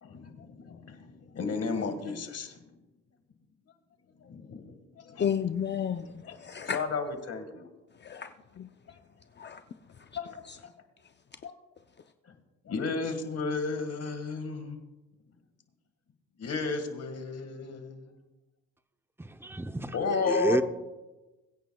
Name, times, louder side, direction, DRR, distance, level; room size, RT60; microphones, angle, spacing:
voice 1, 0.0-2.6 4.2-5.2 6.7-7.7 10.2-10.3 10.6-10.7 11.4-11.5 12.7-14.8 16.4-18.1 19.9-20.6, left 4 dB, 55° left, 1.8 m, -33 dB
voice 2, 5.2-6.8 7.9-9.0 9.3-10.6 11.0-11.1, left 8 dB, 35° left, 0.6 m, -34 dB
voice 3, 19.4-20.6, right 1 dB, 10° right, 0.7 m, -29 dB
22.0 x 9.2 x 2.3 m
cardioid pair, 90°, 30 cm